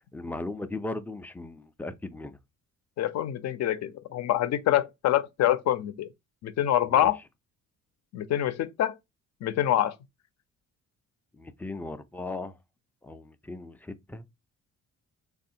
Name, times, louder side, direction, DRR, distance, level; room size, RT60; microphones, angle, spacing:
voice 1, 0.1-2.4 6.9-7.1 11.4-12.5 13.0-14.2, left 2 dB, 5° left, 0.4 m, -37 dB
voice 2, 3.0-6.1 6.4-7.2 8.1-8.9 9.4-9.9, left 12 dB, 60° left, 0.6 m, -25 dB
3.3 x 2.3 x 2.7 m
cardioid pair, 90°, 30 cm